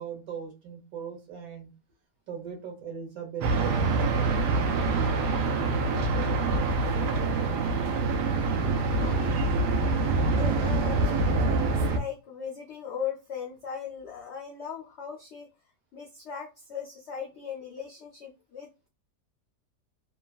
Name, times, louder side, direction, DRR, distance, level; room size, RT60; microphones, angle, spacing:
voice 1, 0.0-1.7 2.3-3.9, right 7 dB, 60° right, 1 dB, 1.4 m, -39 dB
sound 1, 3.4-12.0, right 3 dB, 80° right, 1.2 m, -25 dB
voice 2, 8.9-9.4 10.3-15.5 15.9-18.9, left 7 dB, 70° left, -1 dB, 0.6 m, -39 dB
3.0 x 2.3 x 2.3 m, 0.30 s
omnidirectional pair, 1.8 m